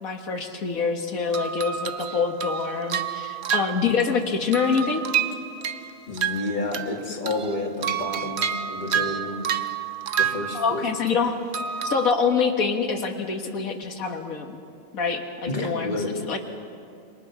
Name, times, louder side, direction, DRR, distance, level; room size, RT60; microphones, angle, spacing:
voice 1, 0.0-5.0 10.5-11.4 11.8-14.6 14.9-16.4, left 5 dB, 85° left, 4 dB, 1.9 m, -25 dB
sound 1, 1.3-4.2 4.5-7.0 7.3-11.1 11.5-12.1, right 8 dB, 55° right, 1.1 m, -29 dB
voice 2, 6.1-9.4 10.2-10.9 15.5-16.1, left 2 dB, 35° left, 1 dB, 2.5 m, -30 dB
27.5 x 24.5 x 6.1 m, 2.4 s
omnidirectional pair, 1.4 m